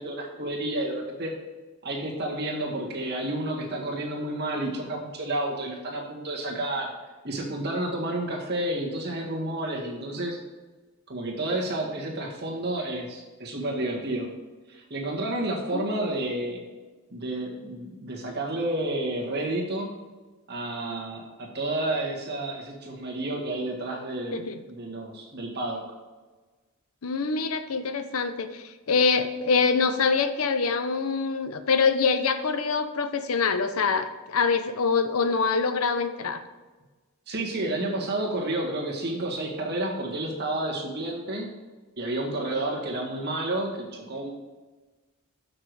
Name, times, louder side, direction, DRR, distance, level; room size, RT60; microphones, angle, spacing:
voice 1, 0.0-1.3 1.8-6.9 7.2-10.4 11.1-14.3 14.7-16.6 17.1-19.9 20.5-25.8 37.3-41.5 42.0-44.3, right 1 dB, 50° right, -1 dB, 1.7 m, -30 dB
voice 2, 27.0-36.4, left 5 dB, 90° left, 10 dB, 0.7 m, -25 dB
6.7 x 6.0 x 4.7 m, 1.3 s
head